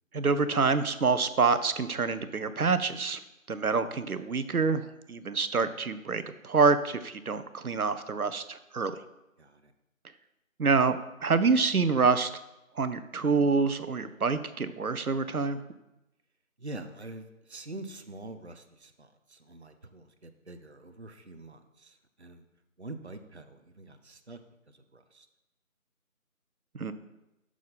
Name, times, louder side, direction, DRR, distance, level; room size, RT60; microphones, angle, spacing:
voice 1, 0.1-3.2 3.5-4.8 5.1-9.0 10.6-12.3 12.8-15.6 26.7-26.9, right 4 dB, 85° right, 12 dB, 0.8 m, -26 dB
voice 2, 9.4-9.7 16.6-22.4 22.8-24.4 24.7-25.3, right 2 dB, 50° right, 8 dB, 0.6 m, -45 dB
6.2 x 5.7 x 5.3 m, 0.96 s
figure-of-eight pair, 175°, 42 cm